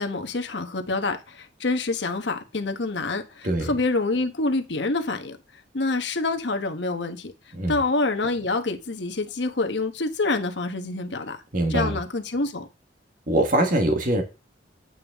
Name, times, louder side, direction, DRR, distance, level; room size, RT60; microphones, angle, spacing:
voice 1, 0.0-5.4 5.7-7.3 7.7-11.4 11.7-12.7, left 3 dB, 75° left, 1.2 m, -26 dB
voice 2, 11.5-12.0 13.3-14.2, right 1 dB, 45° right, 1.4 m, -23 dB
9.0 x 7.2 x 3.5 m
head